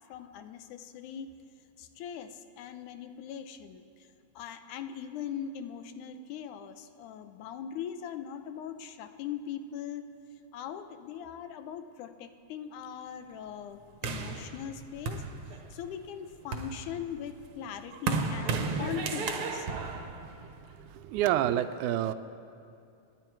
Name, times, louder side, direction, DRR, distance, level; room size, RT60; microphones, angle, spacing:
voice 1, 0.1-1.3 1.8-3.8 4.4-10.1 10.5-15.2 15.7-19.7, left 8 dB, 80° left, 9 dB, 2.2 m, -40 dB
sound 1, 14.0-15.9 16.3-21.0, right 4 dB, 60° right, 1.6 m, -34 dB
voice 2, 20.4-22.1, right 12 dB, 80° right, 11 dB, 2.0 m, -29 dB
29.0 x 10.0 x 4.6 m, 2.6 s
omnidirectional pair, 3.5 m